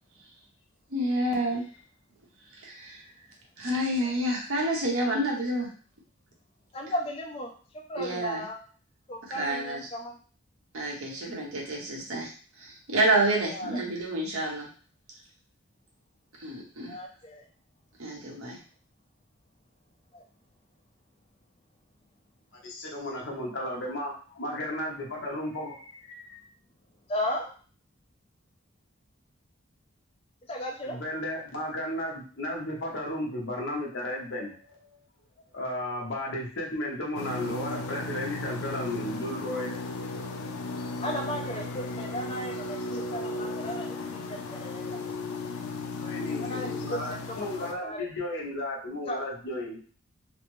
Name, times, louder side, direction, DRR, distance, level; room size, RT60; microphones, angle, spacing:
voice 1, 0.9-1.6 2.6-3.0 3.6-5.7 8.0-8.4 9.3-9.9 10.7-12.3 12.6-14.7 16.4-17.0 18.0-18.6, right 1 dB, 80° right, -2 dB, 0.9 m, -28 dB
voice 2, 6.7-7.5 7.9-8.6 9.1-10.2 13.3-13.8 16.9-17.4 20.1-20.2 27.1-27.5 30.5-31.0 41.0-43.9 44.3-45.0 46.4-48.1 49.1-49.2, equal, 25° left, 1 dB, 0.5 m, -35 dB
voice 3, 22.6-26.4 30.8-35.0 35.5-39.8 46.0-49.8, left 1 dB, 60° left, -2 dB, 0.9 m, -34 dB
sound 1, 37.1-47.7, left 3 dB, 85° left, 0.4 m, -35 dB
3.1 x 2.0 x 3.0 m, 0.41 s
head